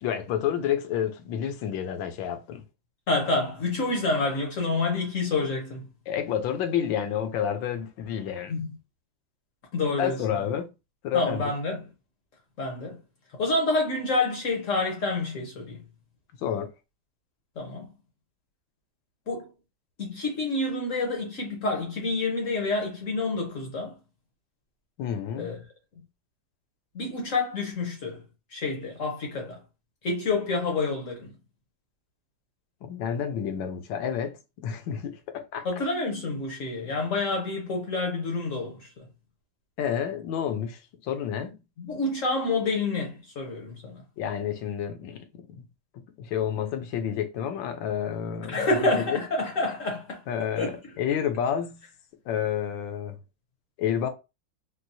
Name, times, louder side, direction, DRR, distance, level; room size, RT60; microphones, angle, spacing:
voice 1, 0.0-2.6 6.1-8.5 10.0-10.7 11.0-11.5 16.4-16.7 25.0-25.6 32.8-35.7 39.8-41.6 44.2-45.6 46.2-49.2 50.3-51.8 52.3-53.2 53.8-54.1, left 9 dB, 80° left, 1.3 m, -30 dB
voice 2, 3.1-5.8 8.6-8.7 9.7-10.4 11.1-11.8 12.6-13.0 13.3-15.8 17.6-17.9 19.3-19.5 20.0-24.0 25.4-25.6 26.9-28.2 28.5-29.6 30.0-31.3 35.6-38.9 41.8-44.0 48.5-50.2 50.6-50.8, left 3 dB, 60° left, 0.9 m, -28 dB
4.5 x 2.0 x 2.6 m
omnidirectional pair, 2.1 m